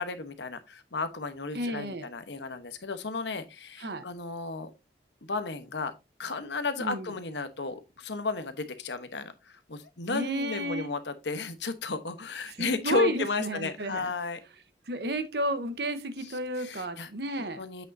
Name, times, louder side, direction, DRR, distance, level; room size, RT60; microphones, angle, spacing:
voice 1, 0.0-4.7 5.2-5.9 6.2-14.4 16.6-17.1 17.4-17.9, left 3 dB, 80° left, 1.1 m, -33 dB
voice 2, 1.5-2.1 3.8-4.0 6.8-7.1 10.1-10.9 12.5-14.1 14.9-17.6, right 1 dB, 65° right, 1.1 m, -32 dB
8.2 x 6.6 x 2.7 m
head